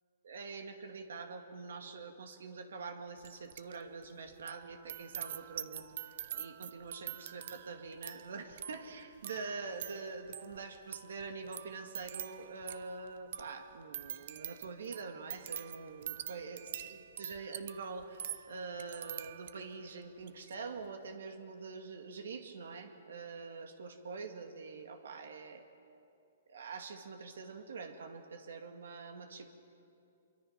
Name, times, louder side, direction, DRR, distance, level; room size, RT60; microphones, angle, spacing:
voice 1, 0.2-25.6 26.5-29.5, right 4 dB, 80° right, 6 dB, 2.0 m, -45 dB
sound 1, 3.2-3.8 4.0-19.8 20.2-20.5, right 10 dB, 55° right, 0.8 m, -46 dB
25.0 x 23.5 x 5.8 m, 2.6 s
hypercardioid pair, 155°, 0 cm